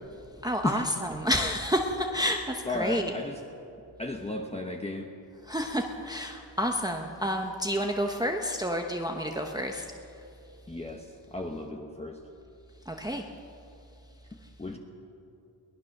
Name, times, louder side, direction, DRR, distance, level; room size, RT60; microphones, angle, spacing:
voice 1, 0.4-3.1 5.5-9.8 12.9-13.2, equal, 10° right, 3 dB, 0.9 m, -29 dB
voice 2, 2.6-3.4 4.0-5.1 10.7-12.2 14.6-14.8, left 2 dB, 15° left, 2 dB, 1.0 m, -34 dB
22.5 x 18.5 x 6.6 m, 2.7 s
wide cardioid pair, 180°, 47 cm